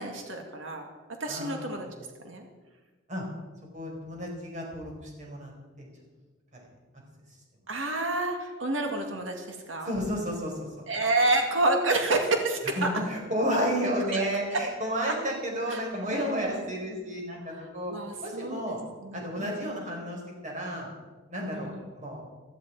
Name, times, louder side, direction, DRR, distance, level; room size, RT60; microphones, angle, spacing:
voice 1, 0.0-1.9 2.2-2.4 7.7-9.9 10.9-12.9 14.1-14.3 14.5-14.6 15.0-15.1 15.7-15.8 16.1-16.6 17.6-19.7 21.5-21.8, right 2 dB, 70° right, 3 dB, 2.1 m, -29 dB
voice 2, 1.3-1.6 3.1-3.2 3.7-5.5 5.8-5.9 9.8-10.5 12.8-17.9 18.2-18.8 19.1-20.9 21.3-22.2, equal, 40° right, 0 dB, 5.0 m, -32 dB
16.0 x 14.0 x 4.8 m, 1.3 s
head